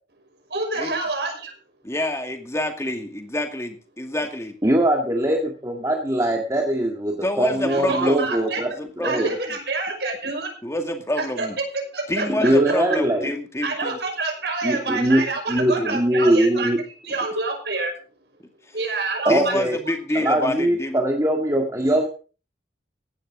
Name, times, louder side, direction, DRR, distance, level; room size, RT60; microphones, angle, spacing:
voice 1, 0.5-1.5 7.6-8.6 9.0-10.5 11.2-11.5 11.7-12.7 13.6-16.7 17.0-17.9 18.7-19.6 20.1-20.2, right 3 dB, 75° right, 2 dB, 5.9 m, -27 dB
voice 2, 1.8-4.6 7.2-8.3 8.7-9.3 10.6-11.6 12.1-14.0 14.9-15.1 15.8-16.0 18.7-18.8 19.3-21.0, left 1 dB, 15° left, 5 dB, 2.3 m, -27 dB
voice 3, 4.6-8.7 9.0-9.3 12.3-13.3 14.6-15.2 15.5-16.8 19.3-19.8 20.2-22.1, right 1 dB, 20° right, 1 dB, 1.9 m, -21 dB
16.5 x 12.0 x 3.8 m, 0.36 s
head